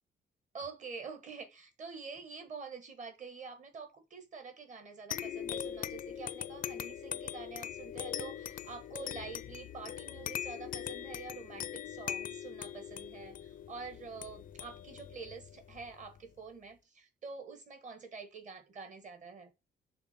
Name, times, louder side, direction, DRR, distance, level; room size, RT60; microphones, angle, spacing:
voice 1, 0.5-19.5, right 4 dB, 40° right, 1.4 m, -47 dB
sound 1, 5.1-16.2, left 10 dB, 50° left, 0.4 m, -41 dB
5.9 x 3.6 x 5.5 m
wide cardioid pair, 150°, 19 cm